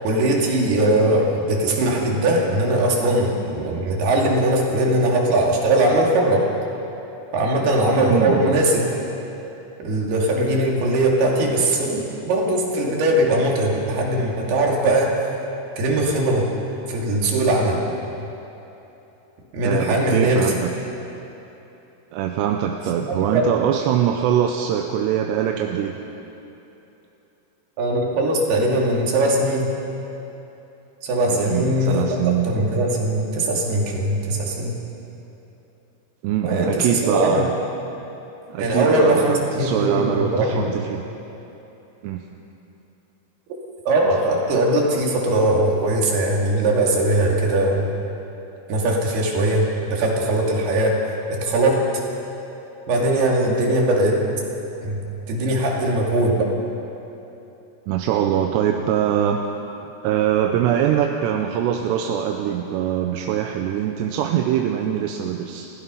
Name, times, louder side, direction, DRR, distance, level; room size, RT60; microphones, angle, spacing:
voice 1, 0.0-6.4 7.3-8.9 9.8-15.3 15.8-16.5 16.9-17.8 19.5-20.5 22.9-23.5 27.8-29.7 31.0-34.8 36.4-37.5 38.6-40.7 43.9-47.9 48.7-52.0 52.9-54.3 54.8-55.0 55.3-56.5, right 1 dB, 60° right, -1 dB, 4.5 m, -20 dB
voice 2, 8.1-8.6 19.6-20.7 22.1-26.0 31.3-32.5 36.2-37.5 38.5-41.0 42.0-42.2 57.9-59.4 60.0-65.7, right 10 dB, 80° right, 3 dB, 2.9 m, -23 dB
30.0 x 16.0 x 5.6 m, 3.0 s
omnidirectional pair, 5.2 m